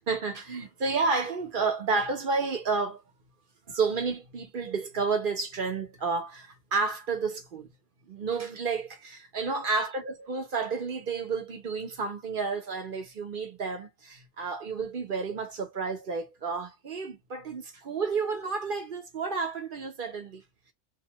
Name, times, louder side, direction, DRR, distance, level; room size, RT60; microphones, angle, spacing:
voice 1, 0.1-3.0 3.7-7.7 8.1-20.4, right 4 dB, 50° right, 0.9 m, -31 dB
2.7 x 2.2 x 2.8 m
omnidirectional pair, 1.2 m